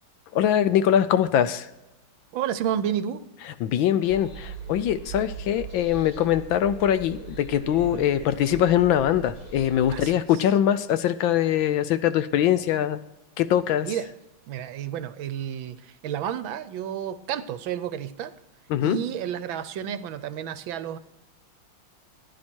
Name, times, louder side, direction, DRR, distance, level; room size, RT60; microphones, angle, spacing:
voice 1, 0.3-1.7 3.6-13.0 13.4-13.9 18.7-19.0, left 10 dB, 75° left, 13 dB, 1.3 m, -22 dB
voice 2, 2.3-3.2 7.9-8.0 9.9-10.2 13.8-14.1 14.5-18.3 18.8-21.0, right 9 dB, 70° right, 13 dB, 1.4 m, -31 dB
sound 1, 4.0-10.1, right 6 dB, 45° left, 4.3 m, -40 dB
15.0 x 10.5 x 4.4 m, 0.95 s
omnidirectional pair, 2.3 m